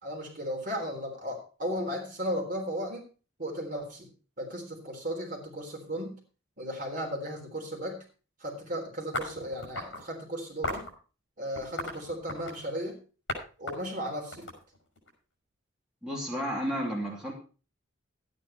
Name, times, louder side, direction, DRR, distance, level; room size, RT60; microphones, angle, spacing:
voice 1, 0.0-3.1 3.4-4.1 4.4-6.2 6.6-8.0 8.4-10.9 11.4-13.0 13.6-14.5, equal, 40° right, 1 dB, 3.6 m, -35 dB
sound 1, 9.1-10.0 10.6-10.9 11.5-12.7 13.3-13.4 13.7-15.1, left 1 dB, 60° left, 5.6 m, -36 dB
voice 2, 16.0-17.3, equal, 5° right, -4 dB, 2.9 m, -32 dB
12.5 x 9.6 x 4.3 m, 0.35 s
head